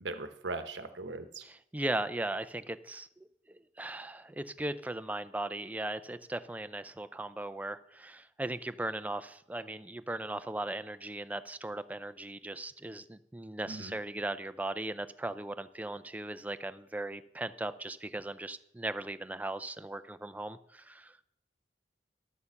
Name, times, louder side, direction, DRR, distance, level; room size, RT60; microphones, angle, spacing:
voice 1, 0.0-1.4 13.7-14.0, right 3 dB, 90° right, 9 dB, 0.9 m, -39 dB
voice 2, 1.4-3.1 3.5-21.1, right 1 dB, 10° right, 12 dB, 0.4 m, -38 dB
11.0 x 6.7 x 7.0 m, 0.77 s
head